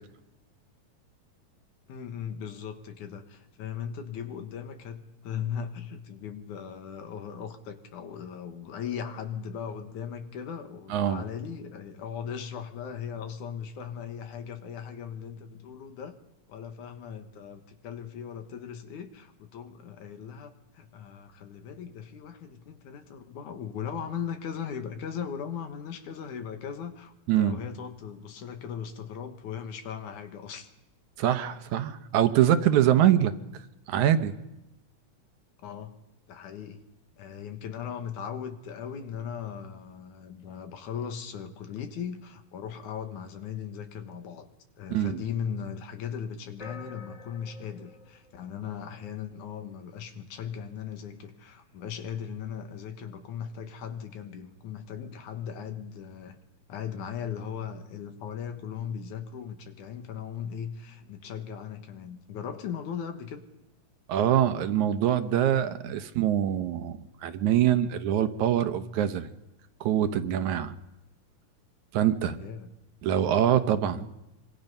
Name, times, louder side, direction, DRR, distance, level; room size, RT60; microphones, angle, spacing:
voice 1, 1.9-16.2 16.5-30.7 35.6-36.0 36.3-36.8 37.2-44.5 44.8-56.4 56.7-63.4 72.4-72.7 73.9-74.1, left 8 dB, 80° left, 7 dB, 3.0 m, -38 dB
voice 2, 10.9-11.2 27.3-27.6 31.2-33.3 33.9-34.3 44.9-45.2 64.1-69.3 69.8-70.7 71.9-72.4 73.0-74.2, right 10 dB, 80° right, 9 dB, 2.4 m, -24 dB
sound 1, 46.6-49.2, left 3 dB, 35° left, 3.6 m, -48 dB
25.0 x 24.5 x 5.5 m, 0.95 s
omnidirectional pair, 3.4 m